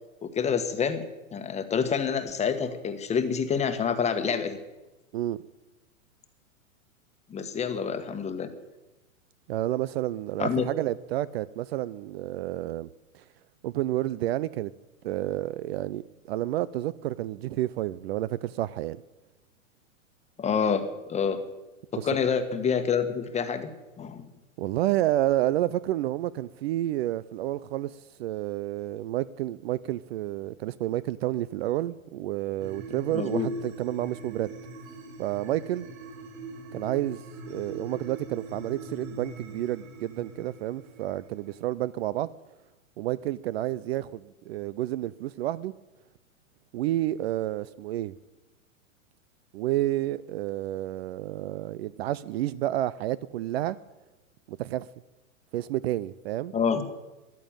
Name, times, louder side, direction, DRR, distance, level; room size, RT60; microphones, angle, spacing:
voice 1, 0.2-4.6 7.3-8.5 10.4-10.7 20.4-21.4 22.0-24.3 33.1-33.5 56.5-56.8, left 6 dB, 15° left, 8 dB, 1.4 m, -27 dB
voice 2, 9.5-12.9 13.1-13.2 13.6-14.7 15.0-19.0 21.9-22.1 24.6-34.5 35.2-35.9 36.7-37.2 37.5-42.3 43.0-45.7 46.7-48.1 49.5-53.8 54.5-54.9 55.5-56.5, right 14 dB, 50° right, 18 dB, 0.6 m, -30 dB
sound 1, 32.6-41.6, right 1 dB, 70° right, 6.6 m, -43 dB
14.5 x 11.0 x 8.8 m, 1.1 s
hypercardioid pair, 130°, 41 cm